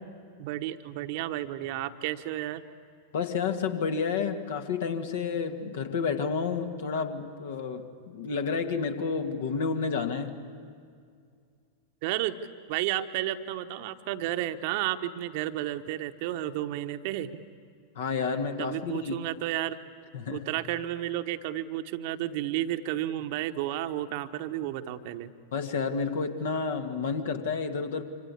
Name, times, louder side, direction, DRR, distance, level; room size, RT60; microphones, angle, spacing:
voice 1, 0.4-2.6 12.0-12.3 12.7-17.3 18.6-19.8 20.3-25.3, right 13 dB, 50° right, 9 dB, 1.1 m, -32 dB
voice 2, 3.1-10.5 18.0-19.2 20.1-20.5 25.5-28.0, left 5 dB, 60° left, 6 dB, 2.0 m, -30 dB
26.0 x 26.0 x 8.5 m, 2.2 s
figure-of-eight pair, 90°, 0 cm